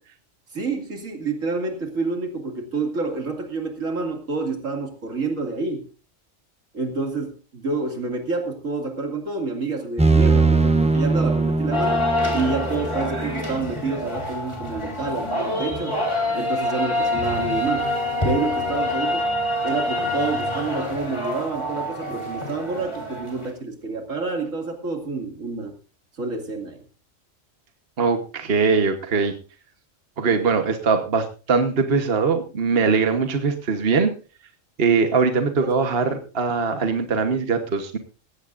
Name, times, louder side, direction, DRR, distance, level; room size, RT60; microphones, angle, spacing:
voice 1, 0.5-5.8 6.7-16.0 16.3-17.9 18.2-19.3 19.6-25.7 26.2-26.8 35.6-35.7, right 3 dB, 75° right, 3 dB, 2.8 m, -28 dB
sound 1, 10.0-13.7, right 3 dB, 5° right, 0.7 m, -21 dB
sound 2, 11.7-23.5, left 1 dB, 20° left, 3.6 m, -26 dB
voice 2, 28.0-29.3 30.2-34.1 34.8-38.0, right 5 dB, 50° right, 6 dB, 1.4 m, -21 dB
18.5 x 15.5 x 2.5 m, 0.35 s
omnidirectional pair, 1.4 m